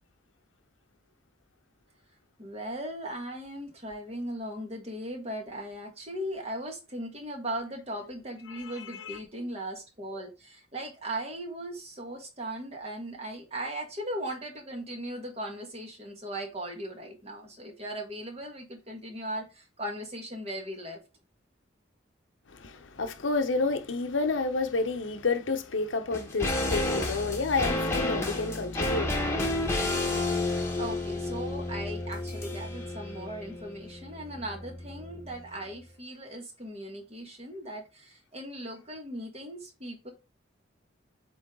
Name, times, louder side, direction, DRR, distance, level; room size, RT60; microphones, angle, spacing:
voice 1, 2.4-21.0 30.8-40.1, right 1 dB, 35° right, 1.6 m, -38 dB
voice 2, 8.5-9.2 22.5-30.7, left 3 dB, 90° left, 0.8 m, -31 dB
sound 1, 26.1-35.5 35.8-35.9, left 2 dB, 15° left, 1.2 m, -31 dB
7.9 x 3.3 x 3.7 m
head